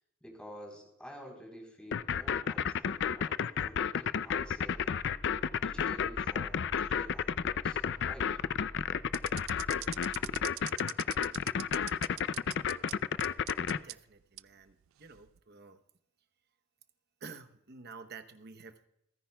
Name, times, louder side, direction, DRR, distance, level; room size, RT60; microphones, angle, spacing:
voice 1, 0.2-4.9 5.6-7.8 8.1-8.3, equal, 5° left, 0 dB, 3.8 m, -50 dB
sound 1, 1.9-13.8, left 7 dB, 60° left, 0.4 m, -31 dB
sound 2, 4.3-10.4, equal, 25° left, 2.3 m, -50 dB
sound 3, 9.1-12.9 13.2-13.9 14.4-14.5 15.1-15.4, right 17 dB, 85° right, 0.3 m, -42 dB
voice 2, 13.8-15.8 17.2-18.8, right 4 dB, 55° right, 9 dB, 0.9 m, -50 dB
28.5 x 10.0 x 2.3 m, 0.80 s
head